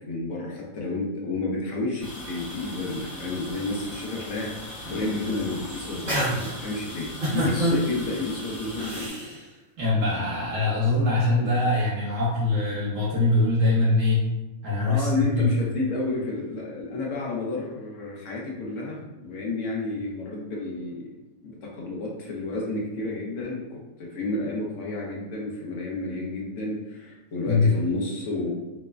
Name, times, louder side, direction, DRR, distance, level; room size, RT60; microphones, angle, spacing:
voice 1, 0.1-9.3 11.4-11.5 14.9-21.1 21.4-28.5, left 2 dB, 70° left, -3 dB, 0.9 m, -31 dB
sound 1, 2.0-9.1, left 1 dB, 35° left, 0.7 m, -40 dB
sound 2, 4.8-5.3 5.7-6.5 7.2-7.8 8.8-9.3, equal, 35° right, 0.9 m, -27 dB
voice 2, 9.8-14.3 14.6-15.5 27.5-27.7, left 2 dB, 70° right, -7 dB, 1.0 m, -23 dB
3.0 x 2.0 x 2.3 m, 1.0 s
omnidirectional pair, 1.4 m